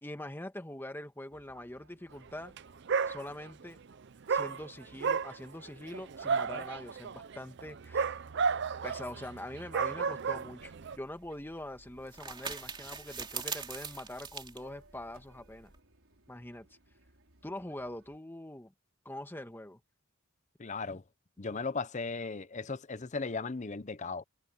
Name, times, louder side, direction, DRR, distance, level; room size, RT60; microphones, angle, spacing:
voice 1, 0.0-2.6 3.1-3.8 4.3-8.1 8.8-15.7 16.3-16.7 17.4-18.7 19.0-19.8, left 1 dB, 10° left, 1.5 m, -43 dB
Fixed-wing aircraft airplane, 1.3-18.2, right 2 dB, 80° right, 4.6 m, -64 dB
Dog, 2.4-2.6 2.9-3.6 4.3-11.0, right 5 dB, 55° right, 0.5 m, -33 dB
sound 1, 10.6-15.8, right 6 dB, 25° right, 3.0 m, -43 dB
voice 2, 20.6-21.0 21.4-24.2, left 4 dB, 35° left, 0.8 m, -36 dB
head